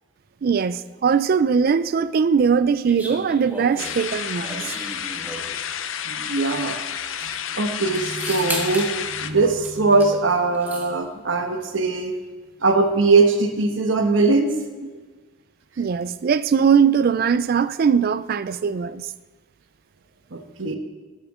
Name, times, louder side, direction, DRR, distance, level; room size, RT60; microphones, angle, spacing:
voice 1, 0.4-4.7 15.8-19.1, right 6 dB, 50° right, 0.3 m, -20 dB
sound 1, 2.9-5.6 6.7-6.8 7.0-7.4 7.9-8.9 9.6-10.1 10.4-10.9, right 1 dB, 10° right, 1.2 m, -34 dB
sound 2, 3.8-9.3, left 8 dB, 90° left, 0.6 m, -30 dB
voice 2, 6.0-6.8 7.2-12.1 12.6-14.5 14.9-15.0 20.3-20.8, right 3 dB, 75° right, 1.1 m, -21 dB
13.0 x 8.1 x 3.7 m
head